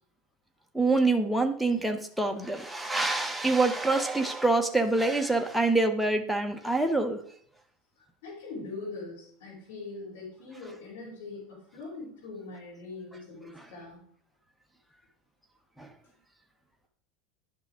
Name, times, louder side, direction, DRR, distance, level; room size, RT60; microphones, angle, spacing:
voice 1, 0.7-7.2 15.8-15.9, right 2 dB, ahead, 3 dB, 0.8 m, -26 dB
voice 2, 8.0-14.1, left 3 dB, 80° left, -7 dB, 3.7 m, -42 dB
10.5 x 6.0 x 3.6 m, 0.62 s
supercardioid pair, 135°, 0 cm